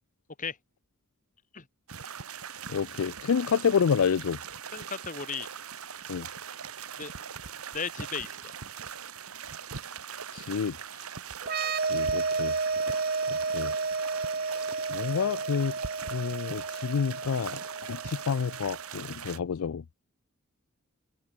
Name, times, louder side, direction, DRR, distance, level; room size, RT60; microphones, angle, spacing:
sound 1, 1.9-19.4, right 7 dB, 80° right, 1.5 m, -41 dB
voice 1, 2.7-4.4 6.1-6.3 10.3-10.8 11.9-12.5 13.5-13.7 14.5-14.6 14.9-15.7 16.1-17.6 17.9-19.8, left 6 dB, 75° left, 0.4 m, -28 dB
voice 2, 4.7-5.5 7.0-7.1 7.7-8.5 12.9-13.0, left 5 dB, 35° left, 1.8 m, -36 dB
sound 2, 11.4-18.9, right 4 dB, 45° right, 1.7 m, -32 dB
head